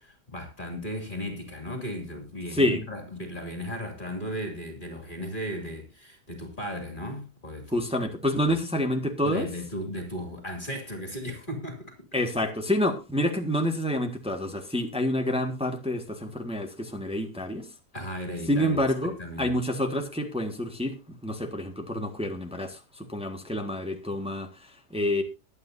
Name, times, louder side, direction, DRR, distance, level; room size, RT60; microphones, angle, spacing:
voice 1, 0.0-7.8 9.2-12.0 17.9-18.8 19.0-19.6, equal, 30° left, 2.9 m, -36 dB
voice 2, 2.5-2.8 7.7-9.5 12.1-17.7 18.5-25.2, left 1 dB, 5° right, 1.5 m, -28 dB
22.0 x 9.0 x 2.7 m
omnidirectional pair, 1.8 m